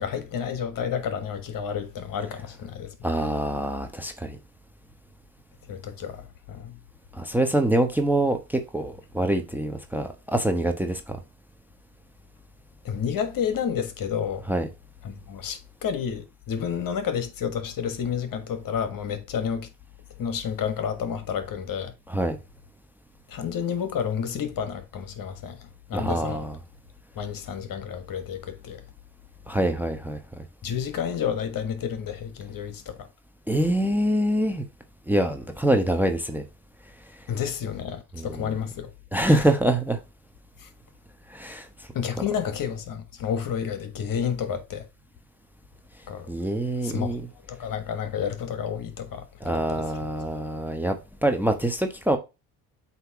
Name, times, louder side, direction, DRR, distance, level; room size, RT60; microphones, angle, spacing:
voice 1, 0.0-2.9 5.7-6.8 12.8-14.5 15.0-19.7 20.2-21.9 23.3-25.6 25.9-26.5 27.1-28.8 30.6-33.1 37.3-38.9 39.3-39.5 40.6-40.7 41.9-44.9 46.1-46.3 46.8-47.2 47.5-49.3 49.5-49.8, left 7 dB, 45° left, 1.4 m, -30 dB
voice 2, 3.0-4.4 7.1-11.2 14.5-14.7 22.1-22.4 25.9-26.5 29.5-30.2 33.5-34.6 35.1-36.4 38.1-38.5 39.1-40.0 41.3-41.7 46.3-47.2 49.4-51.0 51.2-52.2, right 1 dB, 5° right, 1.0 m, -25 dB
8.0 x 3.0 x 4.7 m
hypercardioid pair, 70°, 46 cm